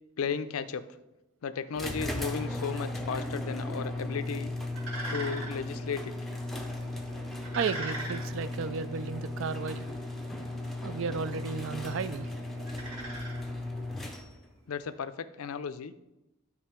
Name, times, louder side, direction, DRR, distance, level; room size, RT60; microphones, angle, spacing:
voice 1, 0.2-1.0 1.4-4.5 5.1-6.1 14.7-15.9, left 6 dB, 80° left, 12 dB, 0.4 m, -35 dB
sound 1, 1.7-14.5, left 1 dB, ahead, 0.6 m, -36 dB
sound 2, 3.7-14.0, right 1 dB, 80° right, 1.8 m, -44 dB
voice 2, 7.5-9.8 10.8-12.3, right 5 dB, 60° right, 14 dB, 0.4 m, -33 dB
10.5 x 3.6 x 4.5 m, 0.98 s
head